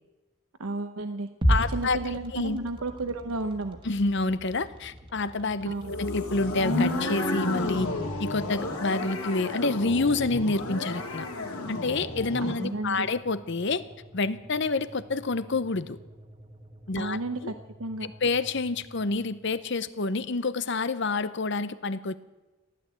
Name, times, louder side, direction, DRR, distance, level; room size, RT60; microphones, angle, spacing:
voice 1, 0.6-1.3 1.7-3.8 5.6-6.0 12.4-13.1 17.0-17.5 17.8-18.1, right 2 dB, 75° right, 8 dB, 0.9 m, -32 dB
sound 1, 1.4-19.6, equal, 25° right, 1.6 m, -38 dB
voice 2, 1.5-2.6 3.8-7.9 8.2-11.3 11.7-13.8 14.1-16.0 16.9-17.5 18.0-22.2, left 3 dB, 55° left, 14 dB, 0.7 m, -28 dB
sound 2, 5.8-12.7, left 2 dB, 85° left, 2.7 m, -31 dB
15.5 x 11.5 x 8.1 m, 1.1 s
head